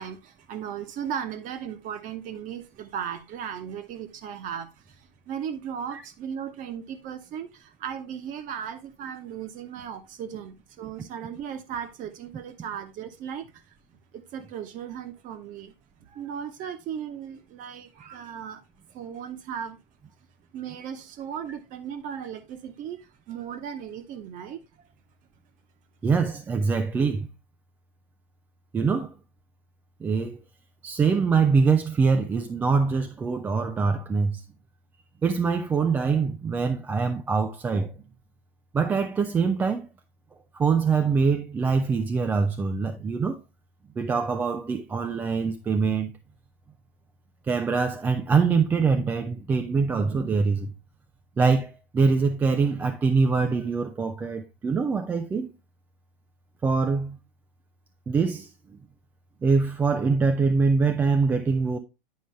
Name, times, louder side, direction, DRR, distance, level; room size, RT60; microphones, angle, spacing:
voice 1, 0.0-13.6 14.1-15.7 16.0-18.6 18.9-19.8 20.5-24.9, right 8 dB, 30° right, 1.0 m, -36 dB
voice 2, 26.0-27.3 28.7-29.1 30.0-30.4 30.8-34.4 35.2-37.9 38.7-39.9 40.5-43.4 44.0-46.1 47.5-50.7 51.4-55.5 56.6-57.2 58.1-58.5 59.4-61.8, right 5 dB, 5° right, 0.3 m, -24 dB
9.6 x 5.0 x 3.4 m
figure-of-eight pair, 105°, 29 cm